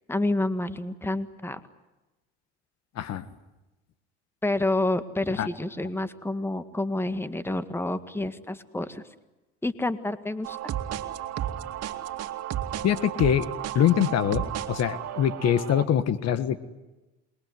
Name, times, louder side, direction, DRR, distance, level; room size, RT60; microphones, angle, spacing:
voice 1, 0.1-1.6 4.4-9.0 9.6-10.6, left 2 dB, 5° left, 11 dB, 1.8 m, -28 dB
voice 2, 2.9-3.3 5.4-5.5 12.8-13.5 13.7-16.6, left 9 dB, 55° left, 13 dB, 1.6 m, -24 dB
sound 1, 10.4-15.8, right 11 dB, 55° right, 2.5 m, -33 dB
28.0 x 22.0 x 9.5 m, 1.1 s
supercardioid pair, 85°, 31 cm